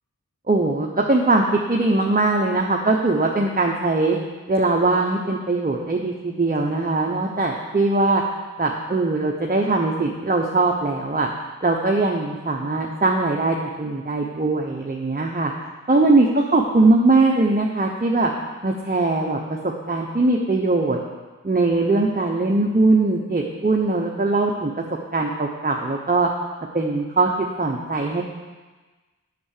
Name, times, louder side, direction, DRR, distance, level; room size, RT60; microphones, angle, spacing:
voice 1, 0.5-4.2 4.5-8.2 8.6-11.3 11.6-15.5 15.9-18.3 18.6-21.0 21.4-24.7 25.1-26.3 26.7-27.3 27.6-28.2, right 2 dB, 30° right, 0 dB, 0.9 m, -21 dB
8.5 x 6.8 x 6.6 m, 1.3 s
wide cardioid pair, 50°, 32 cm